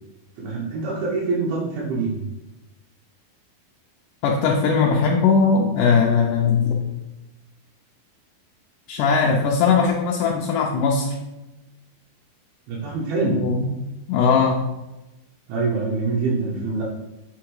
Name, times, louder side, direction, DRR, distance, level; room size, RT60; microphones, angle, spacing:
voice 1, 0.4-2.1 12.7-13.4 15.5-16.8, right 3 dB, 80° right, -5 dB, 2.9 m, -24 dB
voice 2, 4.2-6.8 8.9-11.1 13.3-13.7 14.1-14.6, left 5 dB, 80° left, 0 dB, 1.9 m, -19 dB
7.5 x 4.3 x 4.7 m, 1.0 s
omnidirectional pair, 4.4 m